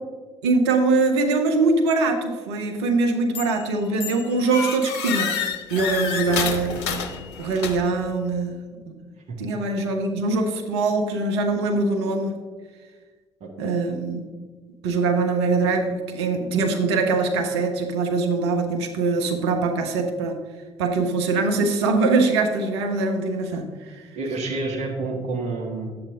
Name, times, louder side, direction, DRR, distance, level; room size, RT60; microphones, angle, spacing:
voice 1, 0.4-5.4 5.7-7.0 7.4-8.6 8.8-8.9 9.4-12.4 13.6-14.2 14.8-20.4 20.8-24.0, right 3 dB, 75° right, 4 dB, 0.8 m, -23 dB
sound 1, 3.4-3.7 4.0-8.0, left 7 dB, 70° left, 0.7 m, -29 dB
voice 2, 13.4-13.7 24.1-25.9, right 3 dB, 55° right, 0 dB, 1.8 m, -29 dB
9.7 x 7.7 x 3.7 m, 1.4 s
figure-of-eight pair, 45°, 14 cm